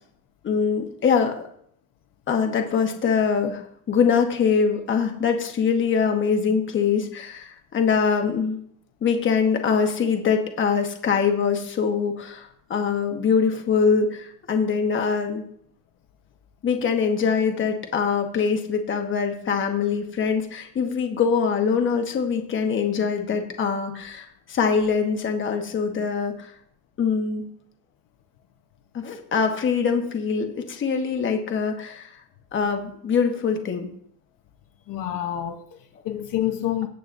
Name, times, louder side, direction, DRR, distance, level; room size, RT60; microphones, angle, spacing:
voice 1, 0.4-1.4 2.3-8.6 9.0-15.5 16.6-26.5 27.0-27.4 28.9-32.2 32.5-33.9, left 6 dB, 30° left, 1.1 m, -23 dB
voice 2, 34.9-36.9, left 12 dB, 60° left, 1.0 m, -28 dB
17.5 x 8.1 x 2.6 m
cardioid pair, 180°, 38 cm